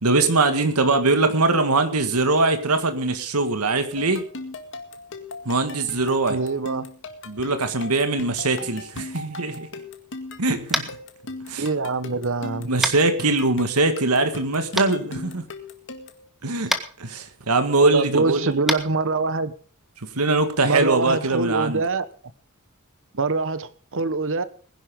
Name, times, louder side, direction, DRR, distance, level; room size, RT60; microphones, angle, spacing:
voice 1, 0.0-4.2 5.5-6.4 7.3-9.7 10.4-10.9 11.5-11.7 12.7-15.5 16.4-18.6 20.0-21.8, right 3 dB, 85° right, 1.7 m, -22 dB
sound 1, 4.0-16.3, left 2 dB, 60° left, 1.9 m, -38 dB
voice 2, 6.3-6.9 11.5-12.7 17.9-19.5 20.6-22.1 23.1-24.4, right 3 dB, 60° right, 1.2 m, -24 dB
Tap, 10.7-11.0 12.8-13.0 14.8-14.9 16.7-16.8 18.6-18.8, equal, ahead, 1.6 m, -23 dB
20.5 x 11.0 x 3.8 m
head